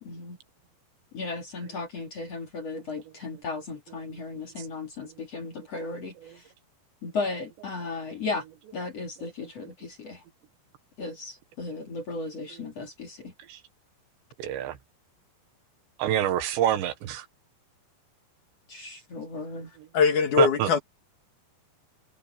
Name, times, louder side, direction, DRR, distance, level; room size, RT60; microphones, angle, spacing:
voice 1, 0.0-0.4 1.1-6.1 7.0-8.4 8.7-10.2 11.0-13.3 18.7-19.7, left 3 dB, 40° left, 3.6 m, -35 dB
voice 2, 14.4-14.8 16.0-17.3 20.4-20.7, right 11 dB, 80° right, 3.7 m, -27 dB
voice 3, 19.9-20.8, left 6 dB, 55° left, 2.9 m, -21 dB
omnidirectional pair, 5.1 m